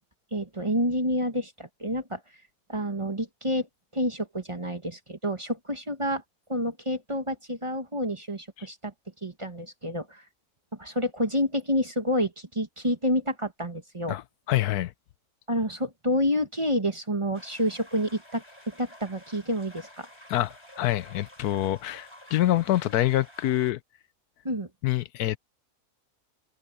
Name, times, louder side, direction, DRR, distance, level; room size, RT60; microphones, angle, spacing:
voice 1, 0.3-2.2 2.7-3.7 3.9-6.2 6.5-8.9 9.2-10.2 10.8-14.2 15.5-20.1 24.4-24.7, equal, 20° right, 1.4 m, -29 dB
voice 2, 14.5-14.9 20.3-23.8 24.8-25.4, left 14 dB, 80° left, 1.2 m, -26 dB
sound 1, 17.3-23.7, equal, 15° left, 5.0 m, -51 dB
omnidirectional pair, 1.6 m